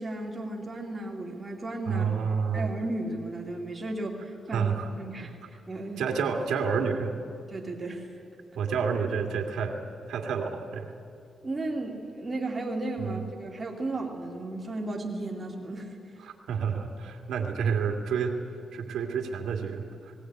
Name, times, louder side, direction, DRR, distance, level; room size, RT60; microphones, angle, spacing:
voice 1, 0.0-5.4 5.7-6.0 7.5-8.1 11.4-16.0, right 2 dB, 20° right, 0 dB, 2.7 m, -34 dB
voice 2, 1.8-2.7 4.5-4.9 6.0-7.1 8.6-9.8 10.1-10.9 13.0-13.2 16.2-18.4 18.7-20.1, right 6 dB, 85° right, 2 dB, 2.3 m, -29 dB
19.0 x 18.5 x 9.0 m, 2.6 s
wide cardioid pair, 155°, 0 cm